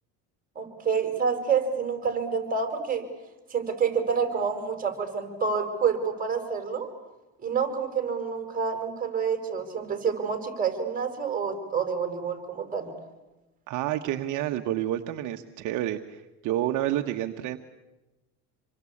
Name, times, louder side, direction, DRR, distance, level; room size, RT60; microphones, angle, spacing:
voice 1, 0.6-3.0 3.5-6.9 7.4-12.9, right 6 dB, 25° right, 6 dB, 5.9 m, -28 dB
voice 2, 13.7-17.6, right 13 dB, 60° right, 5 dB, 1.4 m, -29 dB
27.5 x 24.0 x 8.6 m, 1.1 s
supercardioid pair, 115°, 34 cm